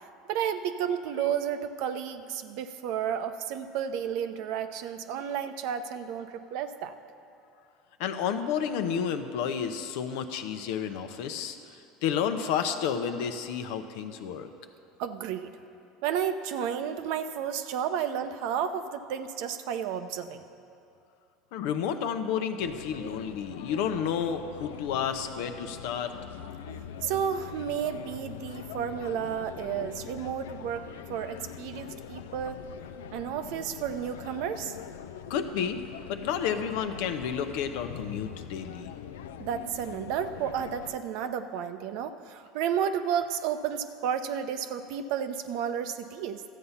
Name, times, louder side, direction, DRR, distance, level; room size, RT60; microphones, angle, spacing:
voice 1, 0.3-6.9 15.0-15.5 16.0-20.4 27.0-32.6 33.1-34.8 39.4-46.5, right 8 dB, 70° right, 9 dB, 0.7 m, -32 dB
voice 2, 8.0-14.5 21.5-26.1 35.3-35.8 36.1-38.9, left 7 dB, 75° left, 8 dB, 0.8 m, -31 dB
sound 1, 22.6-41.0, left 8 dB, 90° left, 0.4 m, -43 dB
13.0 x 8.2 x 5.7 m, 2.5 s
supercardioid pair, 95°, 0 cm